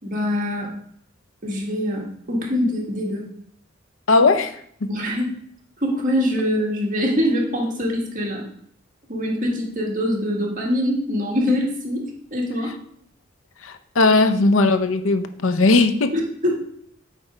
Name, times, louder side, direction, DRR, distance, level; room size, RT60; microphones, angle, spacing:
voice 1, 0.0-0.7 1.4-3.3 4.9-5.4 5.8-8.4 9.1-12.7 16.1-16.6, left 1 dB, 40° right, -1 dB, 1.8 m, -24 dB
voice 2, 4.1-4.9 13.6-16.1, left 3 dB, 80° left, 9 dB, 0.7 m, -18 dB
8.3 x 3.4 x 4.9 m, 0.66 s
head